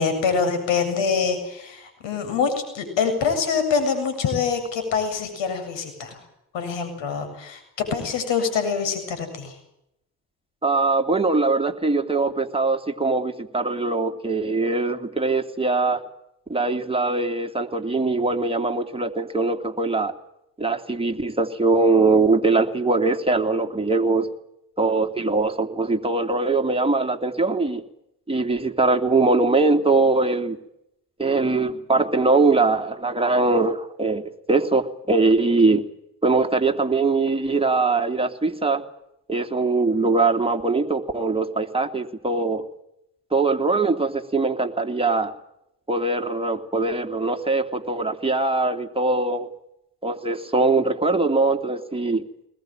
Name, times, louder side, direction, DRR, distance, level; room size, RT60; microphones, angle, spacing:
voice 1, 0.0-6.2 6.5-9.6, left 5 dB, 75° left, 8 dB, 7.8 m, -25 dB
voice 2, 10.6-16.0 16.5-20.1 20.6-24.3 24.8-27.8 28.3-30.6 31.2-35.8 36.2-38.8 39.3-42.6 43.3-45.3 45.9-49.5 50.0-52.2, right 3 dB, 10° right, 4 dB, 3.0 m, -22 dB
21.5 x 21.0 x 9.1 m, 0.81 s
hypercardioid pair, 50°, 44 cm